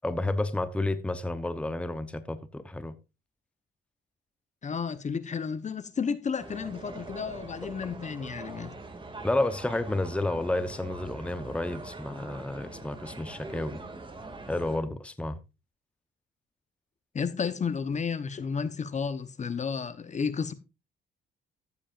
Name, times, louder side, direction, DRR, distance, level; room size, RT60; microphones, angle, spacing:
voice 1, 0.0-2.9 7.6-7.7 9.2-13.8 14.5-15.4, left 2 dB, 5° left, 0.8 m, -31 dB
voice 2, 4.6-8.7 17.1-20.5, left 6 dB, 35° left, 0.9 m, -32 dB
sound 1, 6.4-14.8, right 3 dB, 25° right, 2.3 m, -43 dB
14.0 x 8.5 x 2.5 m
cardioid pair, 90°, 20 cm